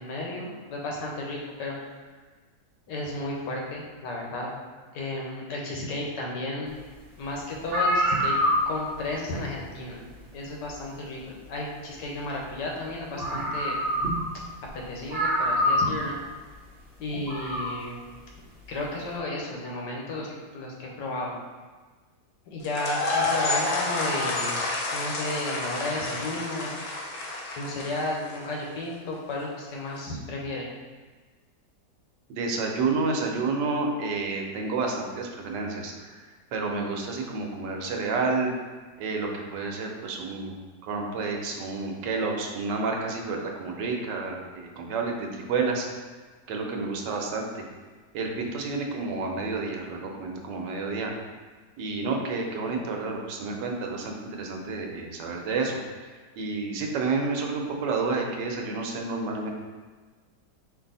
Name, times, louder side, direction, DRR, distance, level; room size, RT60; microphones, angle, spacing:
voice 1, 0.0-1.9 2.9-4.6 4.9-6.8 7.2-8.3 8.7-10.0 10.3-13.8 14.9-16.2 17.0-18.0 18.7-21.3 22.5-24.6 24.9-26.7 27.6-30.7, left 2 dB, 85° left, -2 dB, 1.5 m, -33 dB
sound 1, 7.3-7.4 7.6-9.0 10.4-10.5 12.7-12.8 13.2-14.4 14.7-14.8 15.1-16.1 17.1-17.7, equal, 45° right, 0.8 m, -25 dB
sound 2, 22.6-28.6, left 3 dB, 65° left, 1.2 m, -29 dB
voice 2, 32.3-36.2 36.5-38.5 39.0-40.5 40.8-46.0 46.5-47.6 48.1-51.1 51.8-59.5, right 3 dB, 80° right, 1 dB, 1.3 m, -30 dB
5.0 x 2.6 x 4.0 m, 1.4 s
omnidirectional pair, 1.8 m